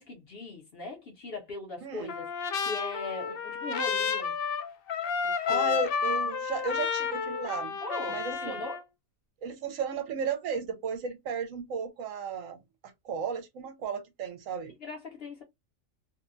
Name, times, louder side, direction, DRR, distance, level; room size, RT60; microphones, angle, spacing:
voice 1, 0.0-4.3 5.2-5.8 7.8-8.8 14.8-15.4, left 2 dB, 55° left, 0.9 m, -40 dB
Trumpet, 2.1-8.8, left 6 dB, 70° left, 0.5 m, -31 dB
voice 2, 5.5-7.8 8.1-8.6 9.4-12.6 13.0-14.7, right 6 dB, 75° right, 1.0 m, -34 dB
2.7 x 2.1 x 2.5 m
omnidirectional pair, 1.4 m